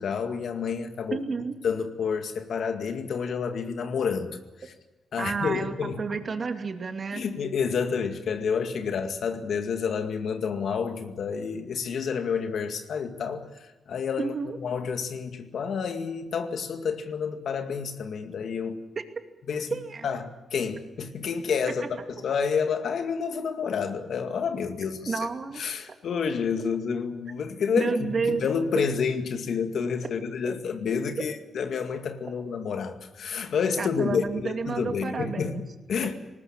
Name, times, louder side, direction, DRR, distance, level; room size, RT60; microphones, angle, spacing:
voice 1, 0.0-1.2 1.6-4.7 5.1-6.0 7.1-13.5 13.9-14.3 14.6-18.8 19.5-19.8 20.0-25.2 25.6-36.1, left 6 dB, 70° left, 7 dB, 2.1 m, -29 dB
voice 2, 1.1-1.6 5.2-7.2 14.2-14.6 19.7-20.1 25.1-25.6 27.7-28.5 30.4-30.5 33.8-35.6, right 4 dB, 45° right, 6 dB, 2.5 m, -30 dB
19.5 x 19.5 x 8.9 m, 1.1 s
cardioid pair, 75°, 0 cm